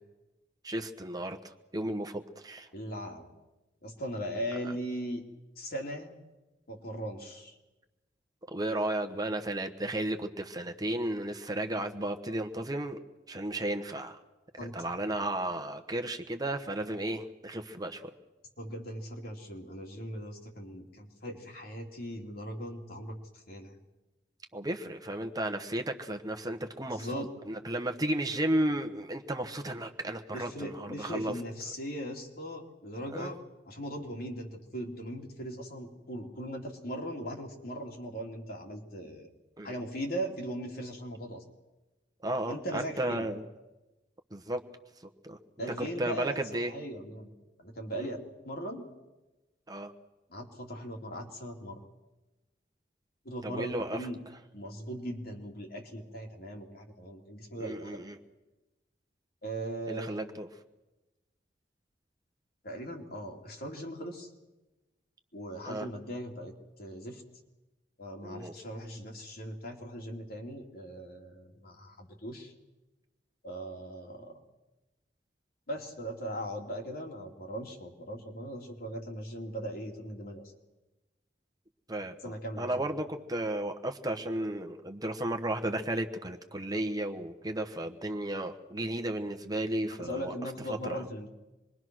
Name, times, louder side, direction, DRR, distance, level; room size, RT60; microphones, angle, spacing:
voice 1, 0.6-2.7 8.5-13.0 13.3-14.2 14.7-18.1 24.5-31.3 33.1-33.3 39.6-39.7 42.2-43.5 44.3-44.6 45.2-45.4 45.8-46.7 48.0-48.1 49.7-49.9 53.4-54.1 57.6-58.2 59.9-60.5 65.7-65.9 68.2-68.5 81.9-90.3 90.7-91.1, right 1 dB, 20° right, 5 dB, 1.2 m, -34 dB
voice 2, 2.7-3.3 3.8-5.2 5.6-6.1 6.7-7.6 14.6-14.7 18.6-23.1 23.5-23.7 26.9-27.3 30.3-33.4 33.7-39.3 39.6-41.4 42.5-43.3 45.6-46.4 46.7-48.2 48.4-48.9 50.3-51.8 53.2-54.2 54.5-58.0 59.4-60.2 62.6-64.3 65.3-66.5 66.8-67.2 68.0-72.5 73.4-74.4 75.7-80.5 82.2-82.8 86.7-86.8 90.0-91.3, equal, 60° left, 1 dB, 3.1 m, -39 dB
26.5 x 22.0 x 6.3 m, 1.1 s
head